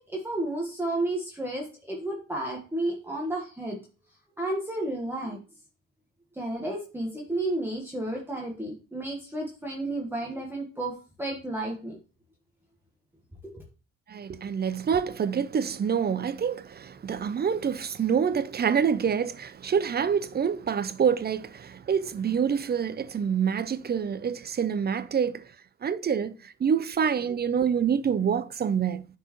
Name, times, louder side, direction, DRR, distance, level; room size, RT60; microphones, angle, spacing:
voice 1, 0.0-3.8 4.4-5.4 6.3-12.0 13.4-13.6, right 1 dB, 5° right, 1.4 m, -32 dB
voice 2, 14.1-25.5 25.8-29.1, right 7 dB, 35° right, 0.5 m, -27 dB
9.0 x 4.5 x 3.1 m
cardioid pair, 90°, 30 cm